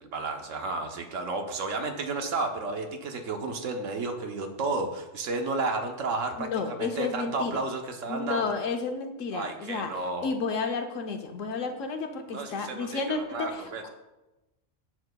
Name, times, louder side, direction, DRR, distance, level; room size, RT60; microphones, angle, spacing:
voice 1, 0.1-8.5 9.3-10.3 12.3-13.8, right 3 dB, 85° right, 4 dB, 1.2 m, -32 dB
voice 2, 6.4-7.6 8.1-9.9 10.2-13.9, left 4 dB, 85° left, 5 dB, 1.2 m, -31 dB
10.5 x 7.3 x 2.2 m, 1.0 s
omnidirectional pair, 1.3 m